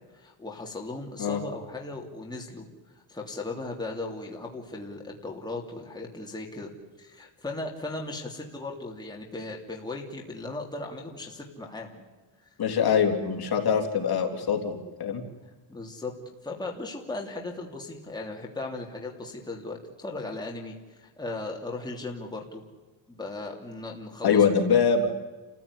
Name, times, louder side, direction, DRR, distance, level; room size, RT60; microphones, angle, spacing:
voice 1, 0.1-2.7 3.1-6.7 7.0-12.0 15.7-16.1 16.4-22.6 23.1-24.6, left 2 dB, 10° left, 0 dB, 3.0 m, -37 dB
voice 2, 12.6-15.2 24.2-25.1, left 6 dB, 45° left, 2 dB, 3.5 m, -23 dB
30.0 x 15.5 x 9.9 m, 1.3 s
cardioid pair, 150°, 50 cm